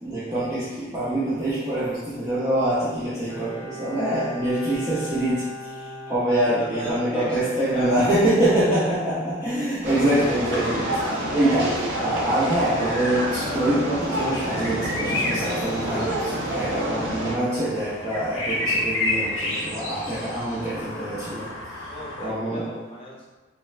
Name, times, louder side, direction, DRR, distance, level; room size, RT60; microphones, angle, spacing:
voice 1, 0.0-11.1 11.3-21.5 22.2-22.7, right 1 dB, 15° right, -11 dB, 0.4 m, -25 dB
Bowed string instrument, 3.3-7.0 7.3-7.4, right 1 dB, 35° right, 0.9 m, -38 dB
voice 2, 6.4-8.3 10.6-10.8 21.9-23.3, left 1 dB, 30° left, -5 dB, 0.6 m, -36 dB
sound 1, 9.8-17.3, right 1 dB, 60° right, 0.5 m, -28 dB
sound 2, 14.4-22.3, left 2 dB, 80° left, 0.7 m, -31 dB
3.0 x 2.1 x 2.3 m, 1.2 s
head